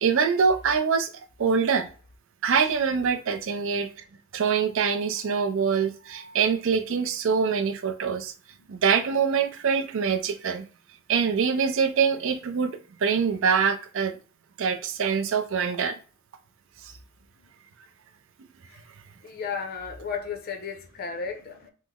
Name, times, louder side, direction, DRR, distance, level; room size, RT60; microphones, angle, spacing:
voice 1, 0.0-1.1 1.4-1.9 2.4-3.9 4.3-8.3 8.7-10.7 11.1-12.7 13.0-14.2 14.6-16.0, right 6 dB, 60° right, 0.4 m, -24 dB
voice 2, 19.2-21.7, left 6 dB, 45° left, 0.5 m, -34 dB
3.1 x 2.0 x 3.5 m
head